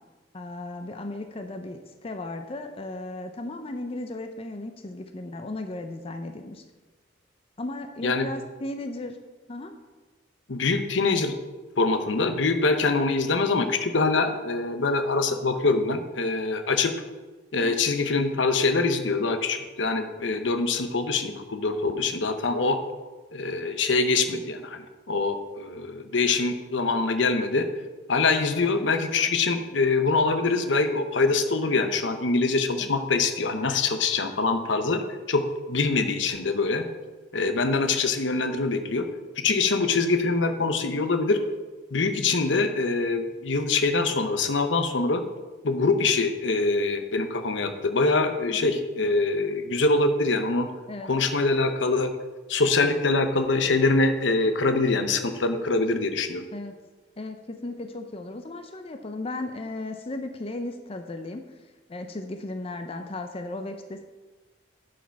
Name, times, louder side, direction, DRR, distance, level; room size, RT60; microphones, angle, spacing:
voice 1, 0.3-6.6 7.6-9.2 9.5-9.8 17.6-17.8 32.8-32.9 48.5-48.7 50.9-51.1 56.5-56.7 57.2-61.5 61.9-64.0, left 2 dB, 30° left, 6 dB, 0.5 m, -35 dB
voice 2, 10.5-11.3 11.8-16.9 17.5-22.8 23.3-27.6 28.1-35.0 35.3-36.9 37.3-39.1 39.4-41.4 41.9-45.2 45.6-50.7 51.0-52.1 52.5-56.5, left 3 dB, 75° left, 8 dB, 0.8 m, -24 dB
11.0 x 5.0 x 4.6 m, 1.3 s
head